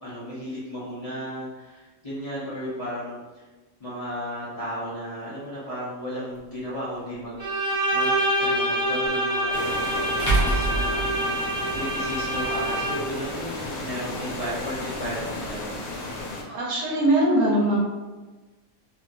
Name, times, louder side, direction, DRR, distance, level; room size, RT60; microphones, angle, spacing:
voice 1, 0.0-3.4 3.8-15.9, equal, 35° left, -10 dB, 0.7 m, -35 dB
sound 1, 6.4-6.5 9.0-9.1 10.2-11.8, right 2 dB, 50° left, 1.1 m, -25 dB
Bowed string instrument, 7.4-13.2, right 1 dB, 20° right, 0.8 m, -26 dB
sound 2, 9.5-16.4, left 2 dB, 85° left, 1.1 m, -34 dB
voice 2, 16.5-17.8, right 1 dB, 70° right, -3 dB, 1.0 m, -21 dB
2.9 x 2.7 x 2.5 m, 1.2 s
omnidirectional pair, 1.5 m